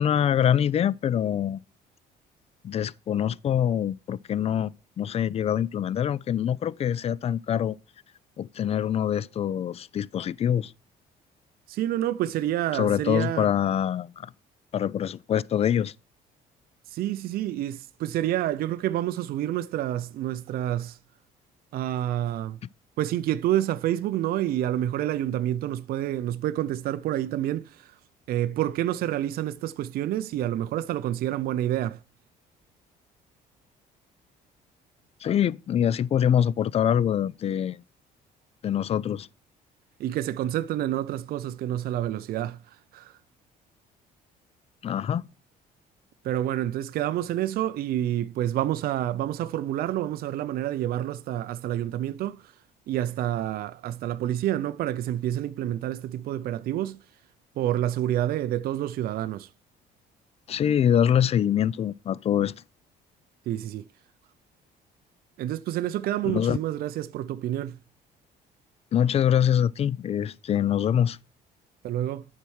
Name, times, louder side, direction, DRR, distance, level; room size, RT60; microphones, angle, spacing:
voice 1, 0.0-1.6 2.6-7.8 8.4-10.7 12.7-14.3 14.7-15.9 35.2-37.8 38.6-39.3 44.8-45.2 60.5-62.6 66.2-66.6 68.9-71.2, left 9 dB, 35° left, 0.4 m, -24 dB
voice 2, 11.7-13.5 16.9-21.0 21.7-22.6 23.0-28.0 28.3-32.0 40.0-43.1 46.2-52.5 52.9-57.0 57.6-59.5 63.5-63.9 65.4-67.8 71.8-72.3, right 12 dB, 65° right, 0.5 m, -28 dB
10.0 x 4.5 x 6.3 m
cardioid pair, 110°, 17 cm